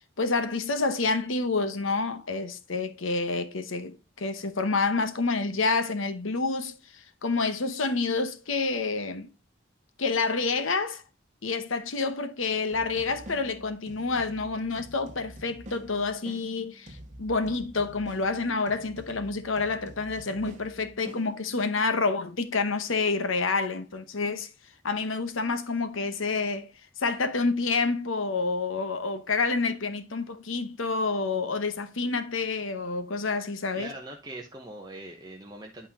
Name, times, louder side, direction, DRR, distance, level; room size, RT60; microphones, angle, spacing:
voice 1, 0.2-9.3 10.0-11.0 11.4-24.5 24.8-26.7 27.0-33.9, left 3 dB, 85° left, 1.0 m, -28 dB
sound 1, 12.7-21.8, equal, 35° right, 1.5 m, -47 dB
voice 2, 33.7-35.9, right 1 dB, 20° right, 1.0 m, -41 dB
11.0 x 4.4 x 3.7 m
head